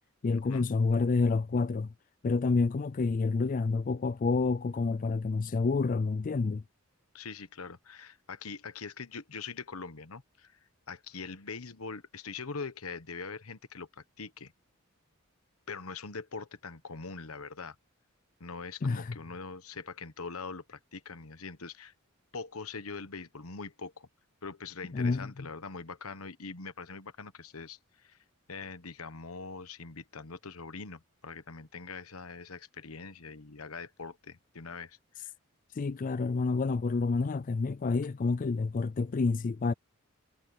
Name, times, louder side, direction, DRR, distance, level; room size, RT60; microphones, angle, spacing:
voice 1, 0.2-1.9 2.2-6.6 18.8-19.2 24.9-25.3 35.8-39.7, left 4 dB, 40° left, 0.4 m, -28 dB
voice 2, 7.1-10.6 10.9-14.5 15.7-17.7 18.4-21.9 22.3-24.1 24.4-28.2 28.5-35.3, left 4 dB, 90° left, 1.3 m, -43 dB
head